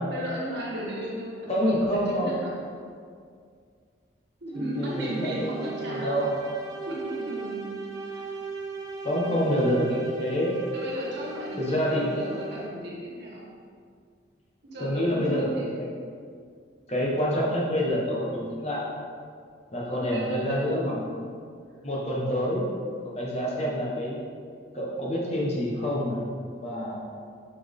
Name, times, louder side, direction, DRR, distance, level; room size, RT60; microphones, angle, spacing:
voice 1, 0.1-2.5 4.4-6.2 6.9-8.3 10.7-13.5 14.7-15.7 19.9-20.8 23.4-23.7, equal, 70° right, -6 dB, 1.8 m, -35 dB
voice 2, 1.5-2.3 4.6-5.5 5.9-6.3 9.0-10.5 11.6-12.1 14.8-15.9 16.9-18.8 19.7-21.1 21.8-22.6 23.0-24.2 24.7-26.2 26.6-27.0, equal, 35° left, -4 dB, 1.4 m, -27 dB
sound 1, 4.5-12.9, right 4 dB, 20° right, 0.6 m, -37 dB
6.1 x 5.9 x 3.7 m, 2.2 s
head